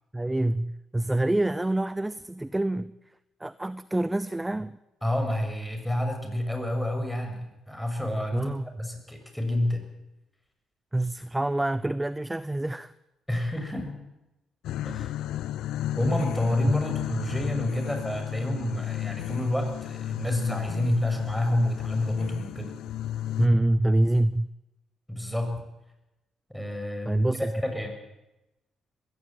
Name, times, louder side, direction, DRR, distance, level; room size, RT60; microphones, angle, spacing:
voice 1, 0.1-2.9 3.4-4.7 8.3-8.6 10.9-12.9 16.7-16.8 23.4-24.5 27.0-27.5, right 1 dB, 15° right, 0.7 m, -26 dB
voice 2, 5.0-9.8 13.3-14.0 14.8-15.1 16.0-22.8 25.1-25.5 26.5-27.9, left 1 dB, 5° left, 6.6 m, -29 dB
sound 1, 14.6-23.5, left 12 dB, 80° left, 0.7 m, -33 dB
20.5 x 16.5 x 9.4 m
supercardioid pair, 70°, 0 cm